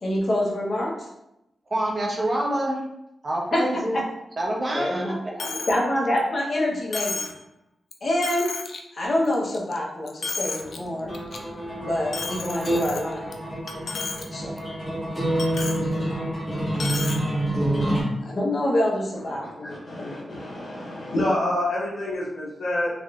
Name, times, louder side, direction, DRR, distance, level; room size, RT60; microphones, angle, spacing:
voice 1, 0.0-1.1 3.5-3.6 4.7-5.1 5.7-7.3 8.0-8.5 8.9-11.1 11.8-13.2 14.3-14.5 18.2-20.4, left 1 dB, 40° left, -3 dB, 0.7 m, -26 dB
voice 2, 1.7-2.8 3.2-4.0 4.4-5.7, right 1 dB, 30° right, -1 dB, 0.6 m, -27 dB
Coin (dropping), 5.4-5.8 6.2-6.3 6.9-7.4 7.9-8.0 8.2-8.8 9.2-9.8 10.1-10.8 11.1-11.4 12.1-13.3 13.7-14.2 14.6-14.7 15.4-15.8 16.8-17.2, left 4 dB, 60° left, 0.3 m, -32 dB
sound 1, 10.6-18.0, right 1 dB, ahead, 1.1 m, -27 dB
voice 3, 19.2-22.9, left 1 dB, 80° left, -10 dB, 0.9 m, -28 dB
3.5 x 2.5 x 2.3 m, 0.86 s
wide cardioid pair, 155°, 0 cm